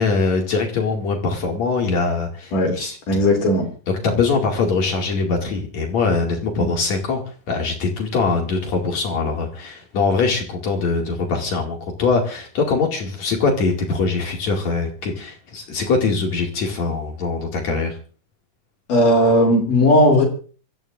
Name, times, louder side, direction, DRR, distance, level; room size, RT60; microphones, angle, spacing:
voice 1, 0.0-3.2 4.0-7.2 7.5-18.0, left 4 dB, 60° left, 1 dB, 3.5 m, -22 dB
voice 2, 3.1-3.7 6.6-6.7 18.9-20.2, left 1 dB, 80° left, 0 dB, 4.5 m, -16 dB
28.5 x 14.5 x 2.6 m, 0.40 s
omnidirectional pair, 3.7 m